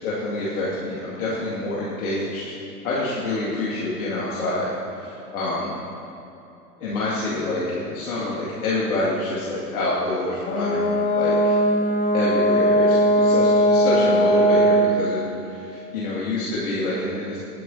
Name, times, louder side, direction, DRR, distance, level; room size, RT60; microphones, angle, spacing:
voice 1, 0.0-2.4 2.8-4.7 4.9-5.8 6.8-11.5 12.1-17.4, left 2 dB, 60° left, -7 dB, 2.4 m, -27 dB
Brass instrument, 10.4-14.9, equal, 25° left, 2.3 m, -19 dB
20.0 x 10.5 x 2.8 m, 3.0 s
figure-of-eight pair, 90°, 48 cm